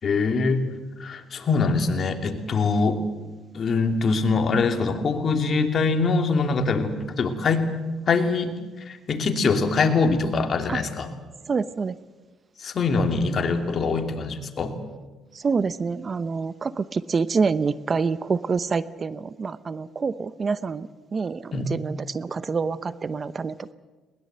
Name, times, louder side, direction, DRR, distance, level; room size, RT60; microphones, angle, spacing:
voice 1, 0.0-0.6 1.0-3.1 3.5-7.7 8.1-8.6 8.8-11.1 12.6-14.8 21.5-21.7, left 4 dB, 50° left, 6 dB, 2.8 m, -23 dB
voice 2, 11.5-12.0 15.3-23.7, right 5 dB, 35° right, 15 dB, 0.8 m, -27 dB
21.5 x 20.5 x 8.0 m, 1.3 s
cardioid pair, 90°, 0 cm